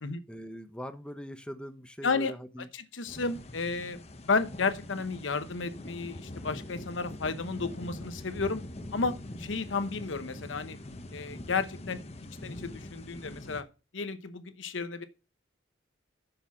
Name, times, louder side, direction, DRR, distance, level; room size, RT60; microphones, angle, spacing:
voice 1, 0.3-2.7, equal, 5° left, 0.9 m, -42 dB
voice 2, 2.0-2.3 2.7-4.0 4.3-8.6 8.9-9.1 9.4-10.8 11.1-12.0 12.4-13.6 13.9-15.0, left 4 dB, 80° left, 0.9 m, -32 dB
sound 1, 3.1-13.6, left 1 dB, 35° left, 0.8 m, -43 dB
6.9 x 5.6 x 7.2 m
head